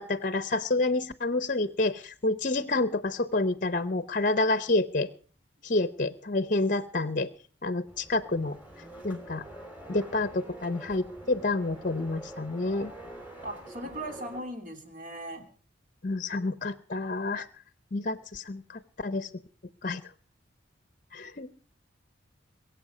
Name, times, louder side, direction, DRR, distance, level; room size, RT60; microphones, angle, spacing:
voice 1, 0.0-5.1 5.6-7.3 7.6-8.6 9.0-9.4 9.9-12.9 16.0-17.5 17.9-18.6 19.0-19.3 19.8-20.0 21.1-21.5, left 2 dB, 45° left, 14 dB, 0.8 m, -28 dB
sound 1, 7.9-14.4, right 1 dB, 10° right, 3.1 m, -46 dB
voice 2, 13.4-15.4, right 1 dB, 45° right, 5 dB, 2.9 m, -38 dB
22.0 x 7.9 x 6.6 m, 0.43 s
head